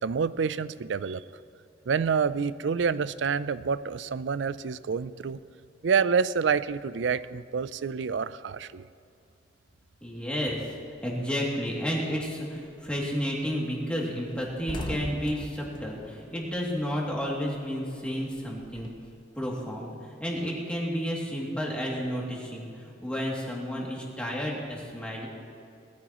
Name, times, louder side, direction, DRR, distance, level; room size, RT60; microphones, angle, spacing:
voice 1, 0.0-1.2 1.9-5.4 5.8-8.8, right 6 dB, 70° right, 16 dB, 0.4 m, -27 dB
voice 2, 10.0-10.6 11.0-18.9 19.3-25.3, equal, 5° left, -4 dB, 2.6 m, -31 dB
sound 1, 12.7-12.9 13.3-13.4 13.7-13.8 14.1-17.1 17.4-19.1, left 1 dB, 25° left, 1.1 m, -40 dB
19.5 x 14.0 x 3.0 m, 2.6 s
head